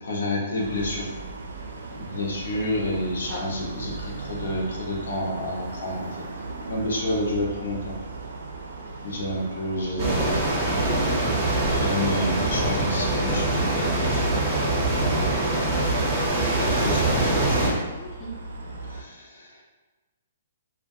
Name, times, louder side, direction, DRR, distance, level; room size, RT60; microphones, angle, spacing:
voice 1, 0.0-1.1 1.9-6.2 6.7-8.0 9.0-10.4 10.7-11.0 11.6-15.6 15.9-17.8 18.9-19.6, left 1 dB, 80° left, -2 dB, 0.7 m, -30 dB
sound 1, 0.6-19.0, right 3 dB, 90° right, 0.4 m, -39 dB
sound 2, 10.0-17.7, right 2 dB, 20° right, 0.6 m, -23 dB
voice 2, 18.0-18.3, left 1 dB, 25° left, -5 dB, 0.4 m, -35 dB
2.3 x 2.1 x 2.7 m, 1.2 s
hypercardioid pair, 165°, 0 cm